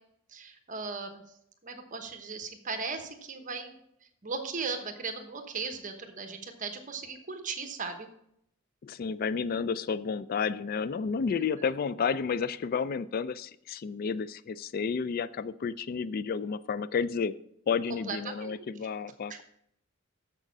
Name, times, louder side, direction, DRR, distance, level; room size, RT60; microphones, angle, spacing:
voice 1, 0.3-1.2 1.6-3.8 4.2-8.1 18.1-18.6 19.3-19.4, right 4 dB, 40° right, 6 dB, 1.1 m, -37 dB
voice 2, 8.8-17.3 17.7-19.4, left 6 dB, 45° left, 16 dB, 0.3 m, -31 dB
7.3 x 6.6 x 5.9 m, 0.73 s
head